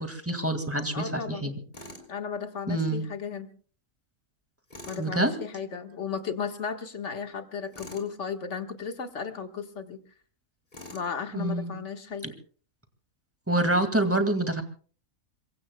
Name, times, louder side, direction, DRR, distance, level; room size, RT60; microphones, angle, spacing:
voice 1, 0.0-1.5 2.7-3.0 5.0-5.4 11.3-11.7 12.2-12.3 13.5-14.6, right 1 dB, 10° right, 8 dB, 2.0 m, -26 dB
voice 2, 0.9-1.5 2.1-3.5 4.9-10.0 10.9-12.3, left 6 dB, 55° left, 6 dB, 1.8 m, -35 dB
Tools, 1.7-2.1 4.7-5.1 7.7-8.1 10.7-11.1, left 1 dB, 30° left, 3.4 m, -44 dB
26.5 x 23.0 x 2.3 m, 0.42 s
omnidirectional pair, 1.5 m